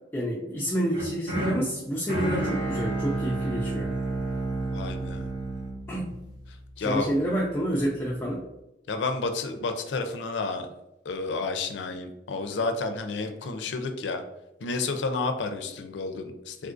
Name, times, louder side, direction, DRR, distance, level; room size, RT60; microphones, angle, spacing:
voice 1, 0.1-3.9 5.9-6.1 6.8-8.4, right 1 dB, 15° left, -5 dB, 0.4 m, -28 dB
sound 1, 0.9-7.0, right 2 dB, 60° right, 1.3 m, -31 dB
voice 2, 4.7-5.3 6.8-7.1 8.9-10.7 11.0-14.2 14.6-16.7, left 3 dB, 75° left, 7 dB, 0.4 m, -30 dB
3.5 x 2.4 x 2.5 m, 0.89 s
head